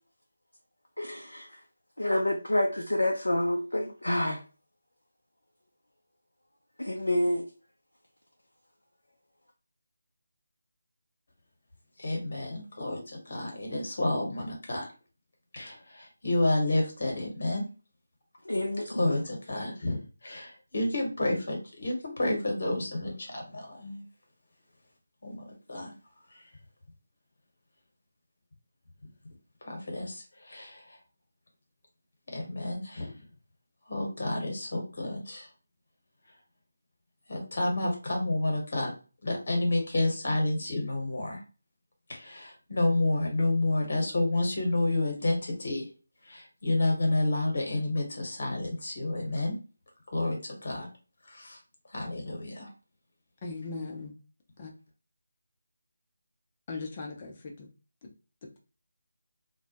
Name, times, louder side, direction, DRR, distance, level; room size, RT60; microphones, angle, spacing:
voice 1, 1.0-1.6 2.0-4.4 6.8-7.4 18.4-19.1, left 1 dB, 85° left, 0.4 m, -28 dB
voice 2, 12.0-14.9 15.5-17.6 19.0-24.1 25.2-25.9 26.3-26.4 29.6-31.0 32.3-33.2 33.9-35.5 37.3-38.9 39.2-41.4 42.1-45.9 46.2-49.6 50.1-50.9 51.2-51.6 51.9-52.7, left 2 dB, 55° left, 1.0 m, -30 dB
voice 3, 53.4-54.1 54.6-54.7 56.7-57.7 58.0-58.1, left 3 dB, 30° left, 0.6 m, -38 dB
2.2 x 2.1 x 2.7 m
figure-of-eight pair, 160°, 0 cm